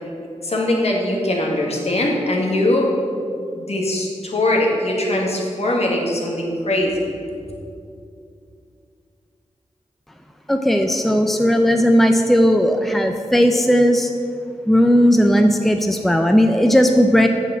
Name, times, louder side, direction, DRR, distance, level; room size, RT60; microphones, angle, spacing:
voice 1, 0.4-2.9 3.5-7.1, left 1 dB, 55° left, -1 dB, 1.9 m, -21 dB
voice 2, 10.5-14.1 14.7-17.3, equal, ahead, 5 dB, 0.6 m, -16 dB
7.0 x 6.9 x 7.4 m, 2.5 s
cardioid pair, 50°, 12 cm